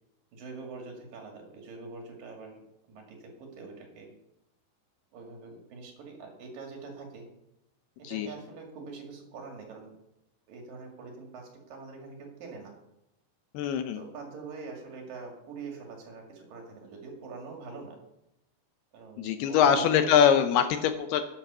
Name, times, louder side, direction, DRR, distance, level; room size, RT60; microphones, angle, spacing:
voice 1, 0.3-2.6 2.9-4.1 5.1-7.3 8.0-9.9 10.5-12.8 13.9-18.0 18.9-20.1, right 4 dB, 55° right, 1 dB, 3.6 m, -44 dB
voice 2, 13.5-14.0 19.2-21.2, left 8 dB, 75° left, 8 dB, 2.5 m, -23 dB
12.0 x 9.0 x 6.8 m, 0.87 s
omnidirectional pair, 5.0 m